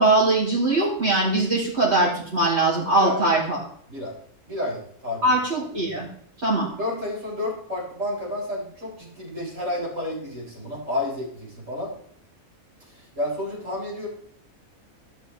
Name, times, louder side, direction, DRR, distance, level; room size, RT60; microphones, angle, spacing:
voice 1, 0.0-3.6 5.2-6.1 6.4-6.7, right 2 dB, 50° right, -6 dB, 4.7 m, -21 dB
voice 2, 4.5-5.4 6.8-11.9 12.9-14.1, left 1 dB, 65° right, -4 dB, 4.8 m, -30 dB
15.5 x 6.3 x 3.9 m, 0.63 s
omnidirectional pair, 1.4 m